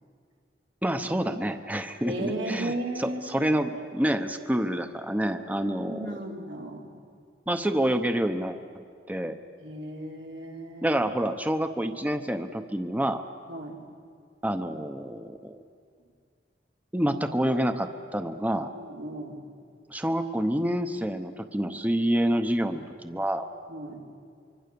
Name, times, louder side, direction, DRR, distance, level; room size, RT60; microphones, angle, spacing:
voice 1, 0.8-2.7 3.0-6.1 7.5-9.4 10.8-13.2 14.4-15.6 16.9-18.7 19.9-23.5, right 1 dB, 10° right, 8 dB, 0.8 m, -28 dB
voice 2, 2.0-3.5 5.6-6.9 9.6-11.0 13.5-13.8 18.7-19.4 23.7-24.0, right 1 dB, 90° right, 0 dB, 3.3 m, -35 dB
25.0 x 24.0 x 6.9 m, 2.2 s
head